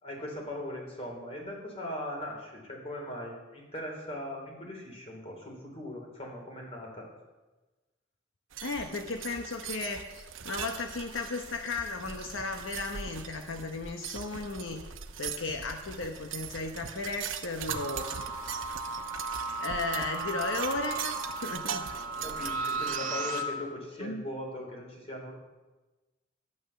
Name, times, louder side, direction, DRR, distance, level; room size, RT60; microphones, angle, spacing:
voice 1, 0.0-7.0 22.2-25.3, left 1 dB, 30° left, 0 dB, 3.4 m, -39 dB
sound 1, 8.5-23.0, right 8 dB, 80° right, 0.8 m, -41 dB
voice 2, 8.6-14.8 15.2-18.1 19.6-21.9 22.6-23.0 24.0-24.3, left 3 dB, 75° left, 5 dB, 1.0 m, -35 dB
sound 2, 17.7-23.4, right 3 dB, 40° right, 1.6 m, -35 dB
12.0 x 9.1 x 6.8 m, 1.2 s
head